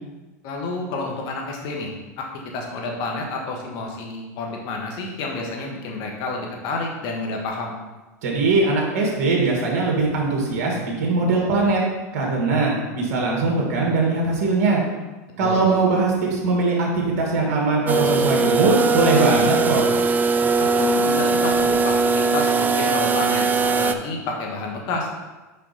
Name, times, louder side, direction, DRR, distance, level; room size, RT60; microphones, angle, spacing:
voice 1, 0.4-1.9 2.2-2.3 2.5-7.8 15.4-15.6 20.6-25.1, left 3 dB, 50° left, 1 dB, 1.5 m, -29 dB
voice 2, 8.2-11.8 12.1-14.8 15.4-19.9, right 3 dB, 65° right, -2 dB, 1.9 m, -21 dB
sound 1, 17.9-23.9, right 4 dB, 20° right, 0.4 m, -20 dB
5.6 x 5.2 x 4.1 m, 1.2 s
hypercardioid pair, 105°, 9 cm